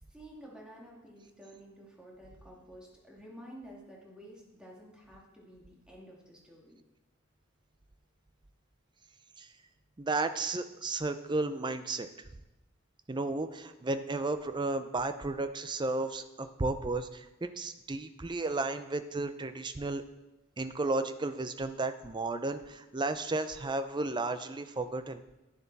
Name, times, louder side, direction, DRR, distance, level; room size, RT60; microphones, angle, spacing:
voice 1, 0.1-6.8, equal, 5° right, -3 dB, 2.3 m, -51 dB
voice 2, 10.0-12.1 13.1-20.0 20.6-25.2, right 2 dB, 20° right, 10 dB, 0.5 m, -33 dB
11.0 x 10.5 x 4.1 m, 1.0 s
head